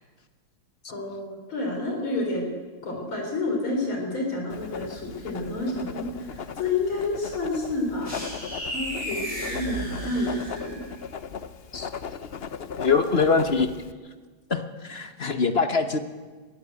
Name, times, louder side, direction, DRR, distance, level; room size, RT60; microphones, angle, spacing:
voice 1, 0.9-2.5 2.8-8.2 8.7-10.8, left 2 dB, 85° left, 2 dB, 4.9 m, -29 dB
Writing, 4.5-13.9, left 6 dB, 50° left, 0.7 m, -38 dB
sound 1, 8.0-10.9, equal, 15° left, 6.5 m, -34 dB
voice 2, 12.8-13.7 14.5-16.0, left 4 dB, 35° left, 8 dB, 1.2 m, -23 dB
22.0 x 16.0 x 8.4 m, 1.4 s
omnidirectional pair, 2.2 m